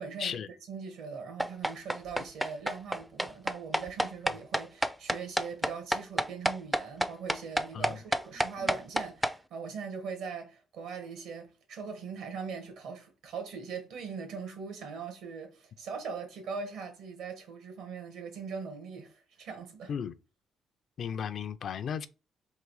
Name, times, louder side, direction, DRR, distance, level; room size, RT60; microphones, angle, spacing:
voice 1, 0.0-19.9, right 5 dB, 85° right, 1.4 m, -41 dB
sound 1, 1.4-9.3, equal, 5° right, 0.3 m, -29 dB
voice 2, 21.0-22.1, left 7 dB, 60° left, 0.4 m, -35 dB
3.7 x 2.7 x 4.7 m
cardioid pair, 90°, 0 cm